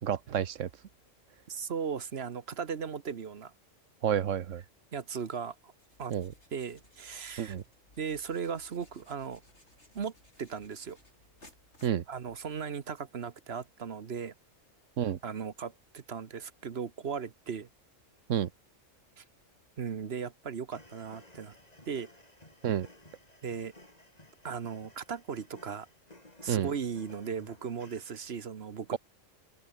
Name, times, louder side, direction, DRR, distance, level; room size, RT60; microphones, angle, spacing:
voice 1, 0.0-0.7 4.0-4.6 6.1-6.3 7.4-7.6 11.8-12.0 15.0-15.2 18.3-18.5 22.6-22.9 26.5-26.7, right 9 dB, 80° right, 1.3 m, -29 dB
voice 2, 1.5-3.5 4.9-5.7 6.0-6.1 6.5-7.6 8.0-9.4 9.9-10.1 10.4-11.0 12.1-14.3 15.2-17.7 19.2-19.3 19.8-21.6 21.9-22.1 23.4-23.7 24.4-25.9 26.4-29.0, right 6 dB, 55° right, 1.3 m, -37 dB
sound 1, 5.7-12.7, left 1 dB, 60° left, 8.3 m, -61 dB
sound 2, 20.7-28.3, left 1 dB, 30° left, 4.5 m, -56 dB
open air
omnidirectional pair, 1.3 m